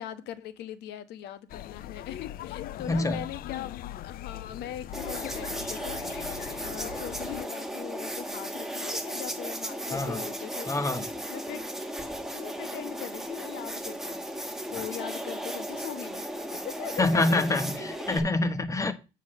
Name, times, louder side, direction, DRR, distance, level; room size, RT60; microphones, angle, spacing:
voice 1, 0.0-3.7 4.0-6.3 6.6-10.7 11.3-11.6 12.0-16.2 16.5-17.8, left 11 dB, 80° left, 1.2 m, -40 dB
sound 1, 1.5-7.5, left 14 dB, 60° left, 0.4 m, -40 dB
voice 2, 2.8-3.3 9.9-10.2 10.7-11.1 17.0-18.9, left 2 dB, 20° left, 1.2 m, -26 dB
sound 2, 4.9-18.2, right 1 dB, ahead, 1.7 m, -36 dB
8.3 x 4.7 x 6.1 m
cardioid pair, 110°, 17 cm